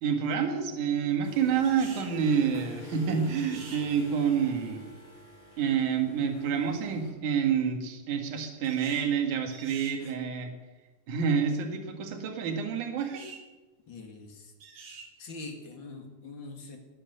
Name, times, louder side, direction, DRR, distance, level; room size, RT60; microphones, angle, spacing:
voice 1, 0.0-4.8 5.6-10.5 11.1-13.2, right 7 dB, 70° right, 4 dB, 3.2 m, -28 dB
sound 1, 1.2-7.1, left 2 dB, 70° left, 4.9 m, -48 dB
sound 2, 1.6-2.1 3.4-3.8 8.6-9.1 9.5-10.0 13.0-13.4 14.6-15.1, right 5 dB, 50° right, 2.6 m, -47 dB
voice 2, 13.9-14.5 15.2-16.8, left 3 dB, 45° left, 5 dB, 2.0 m, -43 dB
18.5 x 10.0 x 6.7 m, 1.2 s
omnidirectional pair, 3.7 m